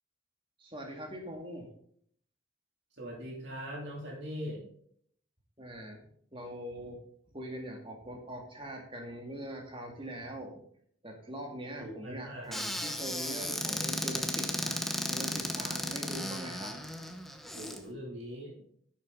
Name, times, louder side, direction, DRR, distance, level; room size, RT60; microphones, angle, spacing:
voice 1, 0.6-1.7 5.6-7.0 7.3-10.6 11.0-16.8, right 1 dB, 25° right, 1 dB, 2.2 m, -42 dB
voice 2, 2.9-4.6 11.8-13.0 17.4-18.5, equal, 60° right, -2 dB, 2.9 m, -42 dB
Squeak / Cupboard open or close, 12.5-17.8, left 1 dB, ahead, 0.9 m, -35 dB
11.5 x 7.3 x 3.9 m, 0.63 s
head